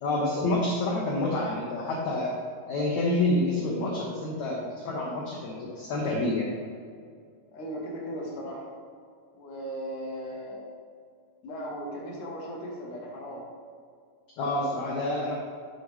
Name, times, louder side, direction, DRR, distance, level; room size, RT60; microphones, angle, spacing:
voice 1, 0.0-2.3 2.7-6.5 14.4-15.3, left 2 dB, 80° left, -3 dB, 1.6 m, -28 dB
voice 2, 7.5-8.7 9.3-10.6 11.4-13.4, equal, 60° left, -3 dB, 2.4 m, -37 dB
9.7 x 7.2 x 3.2 m, 2.2 s
omnidirectional pair, 4.8 m